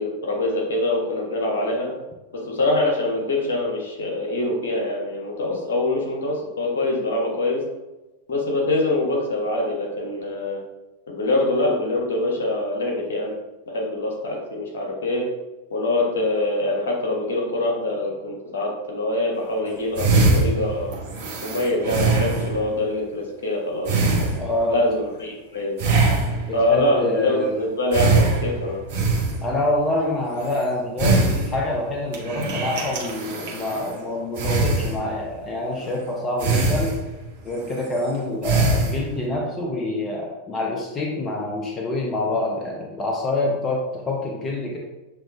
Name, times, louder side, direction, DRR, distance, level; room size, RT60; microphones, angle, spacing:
voice 1, 0.0-1.9 2.3-7.6 8.3-10.6 11.1-13.3 13.7-15.3 15.7-20.9 21.4-23.9 24.7-25.7 26.5-28.8, left 2 dB, 65° left, -1 dB, 1.2 m, -24 dB
sound 1, 19.7-19.8 19.9-22.8 23.8-24.8 25.8-26.7 27.9-29.6 30.4-30.6 31.0-31.9 32.1-34.0 34.3-35.3 35.8-36.0 36.4-37.3 37.6-38.0 38.4-39.2, right 3 dB, 55° right, 1.0 m, -22 dB
voice 2, 24.4-24.8 26.5-27.6 29.4-37.0 37.4-44.8, left 2 dB, 20° left, -1 dB, 0.6 m, -26 dB
6.9 x 3.0 x 2.6 m, 1.1 s
figure-of-eight pair, 90°, 0 cm